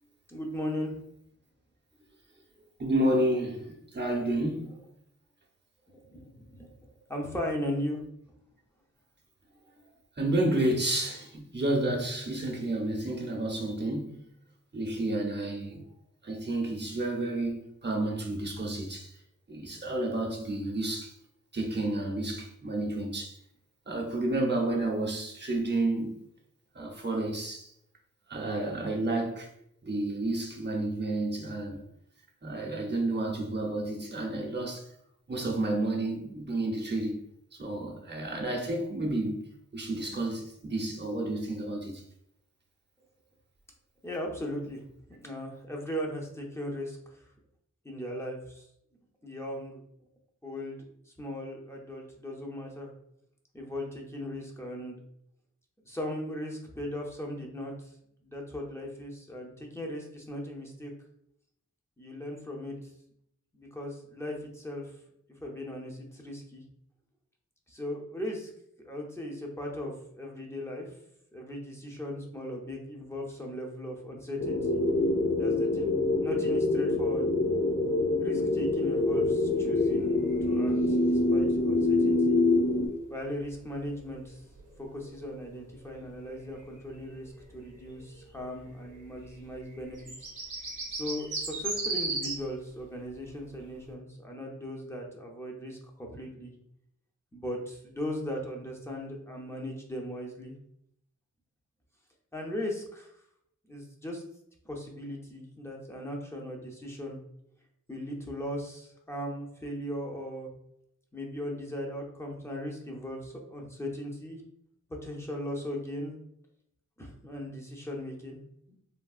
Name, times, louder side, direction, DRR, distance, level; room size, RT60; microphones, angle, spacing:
voice 1, 0.3-1.0 5.9-8.0 44.0-44.8 45.1-47.2 47.8-48.7 49.2-49.8 50.4-52.9 53.5-55.0 55.8-57.9 58.2-60.9 62.0-62.8 63.5-64.9 65.4-66.6 67.7-68.5 68.8-70.9 71.3-74.8 75.4-77.3 78.2-80.1 80.4-82.4 83.1-84.4 84.8-90.3 90.9-96.5 97.3-100.5 102.3-103.1 103.7-104.2 104.6-107.2 107.9-110.5 111.1-114.4 115.0-116.1 117.0-118.4, left 1 dB, 10° left, 0.7 m, -38 dB
voice 2, 2.8-4.8 10.2-14.3 14.7-15.8 16.2-19.1 19.5-21.1 21.5-23.4 23.9-26.2 26.7-27.7 28.3-29.5 29.8-31.8 32.4-34.9 35.3-37.2 37.5-42.0, right 1 dB, 35° right, 0.7 m, -30 dB
sound 1, 74.4-82.9, left 2 dB, 70° left, 0.7 m, -25 dB
sound 2, 78.4-92.5 92.8-92.9 93.1-93.6 93.9-94.0, right 3 dB, 70° right, 0.7 m, -40 dB
3.4 x 2.2 x 2.4 m
wide cardioid pair, 60°, 32 cm